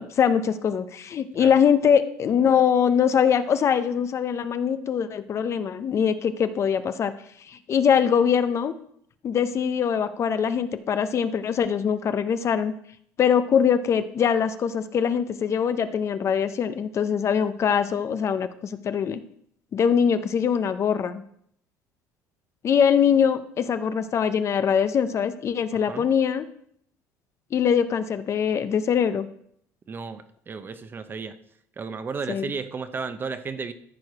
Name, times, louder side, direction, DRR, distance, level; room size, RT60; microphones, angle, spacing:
voice 1, 0.0-7.1 7.5-8.7 9.2-12.7 13.2-19.2 19.7-21.2 22.6-26.5 27.5-29.3 32.3-32.5, left 7 dB, 45° left, 11 dB, 0.6 m, -22 dB
voice 2, 25.7-26.1 29.9-31.4 31.8-33.7, right 5 dB, 30° right, 11 dB, 0.8 m, -34 dB
14.0 x 4.8 x 4.8 m, 0.69 s
cardioid pair, 105°, 7 cm